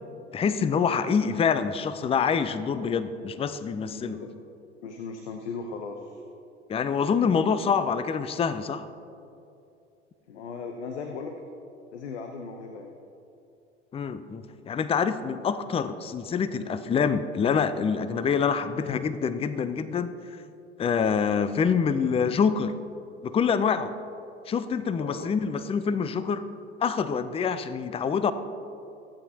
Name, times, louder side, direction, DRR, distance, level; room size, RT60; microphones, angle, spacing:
voice 1, 0.3-4.2 6.7-8.9 13.9-20.2 20.8-22.7 23.2-23.9 24.5-26.4 26.8-28.3, left 6 dB, 15° left, 13 dB, 0.5 m, -26 dB
voice 2, 3.8-4.3 4.8-6.2 10.3-11.3 11.9-12.9 25.0-25.3, left 4 dB, 75° left, 5 dB, 0.9 m, -37 dB
22.0 x 8.8 x 2.8 m, 2.6 s
figure-of-eight pair, 70°, 34 cm